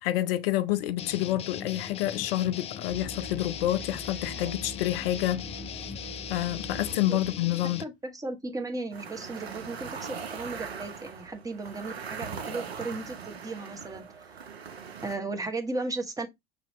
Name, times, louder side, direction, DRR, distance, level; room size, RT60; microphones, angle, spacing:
voice 1, 0.0-5.5 6.3-7.8, left 14 dB, 65° left, 0.6 m, -28 dB
sound 1, 1.0-7.8, left 9 dB, 20° left, 0.3 m, -39 dB
Musical instrument, 2.9-7.4, right 1 dB, 50° right, 1.5 m, -43 dB
voice 2, 7.8-14.4 15.0-16.3, right 3 dB, 10° right, 0.9 m, -35 dB
sound 2, 8.9-15.2, right 6 dB, 85° right, 0.7 m, -40 dB
6.4 x 2.8 x 2.9 m
figure-of-eight pair, 75°, 31 cm